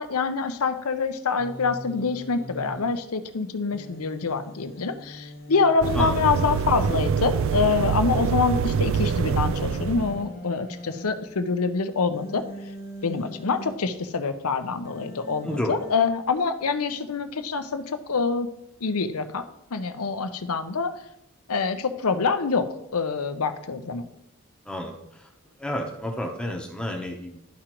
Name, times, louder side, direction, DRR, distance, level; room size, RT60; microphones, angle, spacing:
voice 1, 0.0-12.4 13.0-18.5 18.8-19.4 19.7-20.9 21.5-24.1, left 4 dB, 80° left, 9 dB, 0.7 m, -26 dB
Human voice, 1.4-2.9 3.7-5.7 6.4-8.3 9.0-11.1 12.1-13.7 14.9-16.1, equal, 40° left, 1.0 m, -41 dB
sound 1, 5.8-10.3, right 6 dB, 60° right, 0.3 m, -25 dB
voice 2, 15.4-15.8 24.7-25.3 25.6-27.4, left 1 dB, 5° left, 0 dB, 0.8 m, -30 dB
12.5 x 5.0 x 3.0 m, 0.82 s
head